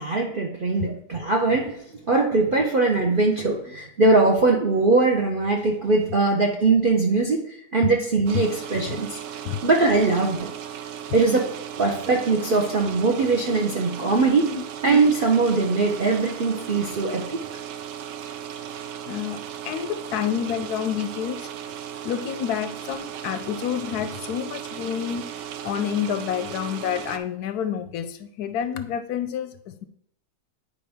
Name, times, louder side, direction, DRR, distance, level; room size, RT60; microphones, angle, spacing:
voice 1, 0.0-1.8 2.1-7.4 7.7-9.2 9.6-10.5 11.1-11.5 11.8-14.5 14.8-17.4, right 3 dB, 50° right, 0 dB, 0.6 m, -21 dB
sound 1, 8.3-27.2, right 9 dB, 85° right, 1.2 m, -36 dB
voice 2, 19.1-21.5 22.0-25.4 25.6-29.8, left 9 dB, 75° left, 10 dB, 1.0 m, -29 dB
9.5 x 4.9 x 3.5 m, 0.73 s
omnidirectional pair, 1.8 m